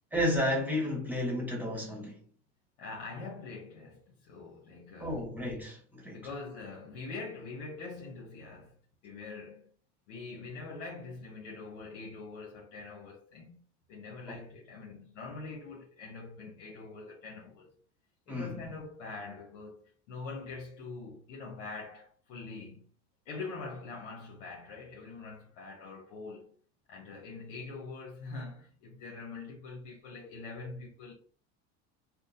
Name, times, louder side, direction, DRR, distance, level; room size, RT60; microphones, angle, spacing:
voice 1, 0.1-2.2 5.0-6.2 14.3-14.4 18.3-18.6, left 1 dB, 5° right, 1.3 m, -32 dB
voice 2, 2.8-5.3 6.1-8.8 9.0-9.7 10.1-13.6 13.9-17.7 18.3-22.9 23.3-26.5 26.9-31.1, left 3 dB, 85° left, 0.9 m, -44 dB
3.6 x 2.3 x 2.6 m
supercardioid pair, 90°, 36 cm